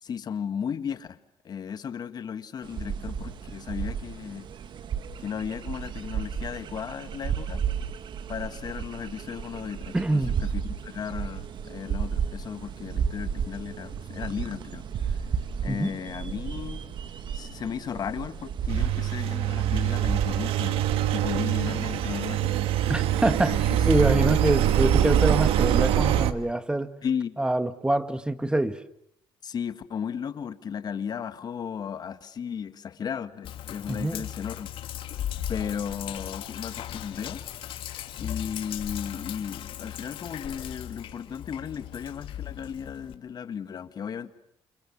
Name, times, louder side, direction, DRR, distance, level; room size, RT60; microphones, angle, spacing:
voice 1, 0.0-1.2 1.4-4.5 5.2-7.6 8.3-15.3 15.6-16.8 17.3-22.6 23.5-23.6 24.0-24.3 27.0-27.4 29.4-34.7 35.5-37.4 38.2-44.4, left 7 dB, 45° left, 1.9 m, -35 dB
sound 1, 2.6-21.4, right 7 dB, 60° right, 1.9 m, -33 dB
voice 2, 9.9-10.3 15.7-15.9 22.9-23.5 23.8-26.9 27.4-28.8 33.9-34.3, right 1 dB, 10° right, 1.6 m, -25 dB
Engine, 18.7-26.3, right 11 dB, 90° right, 1.6 m, -24 dB
Sink (filling or washing), 33.4-43.1, left 11 dB, 70° left, 2.9 m, -37 dB
29.0 x 28.5 x 7.3 m
cardioid pair, 120°, 9 cm